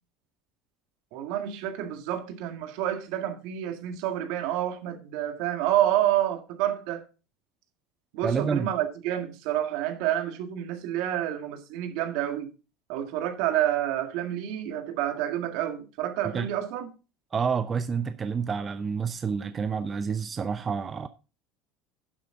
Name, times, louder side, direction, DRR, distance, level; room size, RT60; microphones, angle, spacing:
voice 1, 1.1-7.0 8.1-12.5 12.9-16.9, right 12 dB, 65° right, 1.8 m, -28 dB
voice 2, 8.2-8.7 16.3-16.5 17.3-21.1, right 6 dB, 30° right, 0.6 m, -28 dB
11.0 x 7.6 x 3.8 m
hypercardioid pair, 90°, 0 cm